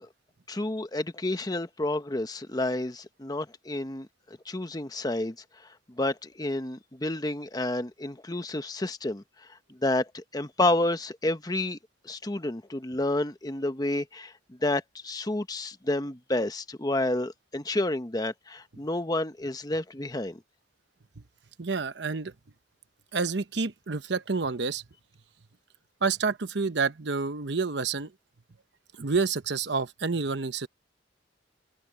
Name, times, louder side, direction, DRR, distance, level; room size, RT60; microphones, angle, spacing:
voice 1, 0.5-9.2 9.7-11.8 12.0-20.4, left 2 dB, 20° left, 0.9 m, -30 dB
voice 2, 21.6-22.3 23.1-24.8 26.0-28.1 29.0-30.7, right 4 dB, 65° right, 0.9 m, -28 dB
head